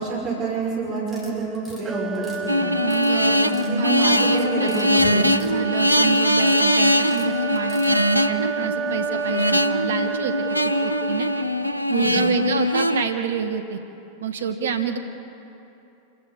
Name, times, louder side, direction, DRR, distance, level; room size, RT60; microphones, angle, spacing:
voice 1, 0.0-2.6 3.3-5.3 12.0-12.4, right 3 dB, 40° right, -3 dB, 6.3 m, -27 dB
sound 1, 1.0-1.8 2.1-3.1 3.4-3.7 4.0-4.9 5.1-6.0 6.3-6.6 7.0-7.9, left 1 dB, 15° left, 6.8 m, -45 dB
sound 2, 1.8-11.8, right 6 dB, 15° right, 0.7 m, -31 dB
sound 3, 2.5-13.0, left 1 dB, 90° left, 0.6 m, -21 dB
voice 2, 2.8-3.4 3.6-4.7 5.4-11.3 11.9-13.8 14.2-15.0, right 7 dB, 65° right, 6 dB, 1.6 m, -28 dB
28.5 x 16.0 x 8.1 m, 2.9 s
figure-of-eight pair, 90°, 0 cm